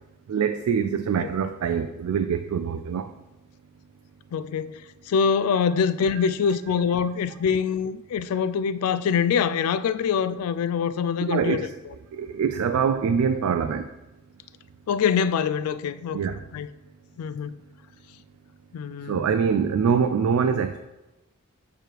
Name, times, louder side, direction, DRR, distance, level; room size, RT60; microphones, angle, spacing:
voice 1, 0.3-3.1 11.3-11.7 12.1-13.9 16.1-16.4 19.0-20.8, right 6 dB, 80° right, 0.3 m, -24 dB
voice 2, 4.3-11.7 14.9-16.2 16.5-16.7 17.2-17.5 18.7-19.2, left 6 dB, 80° left, 0.3 m, -24 dB
6.7 x 3.1 x 4.5 m
head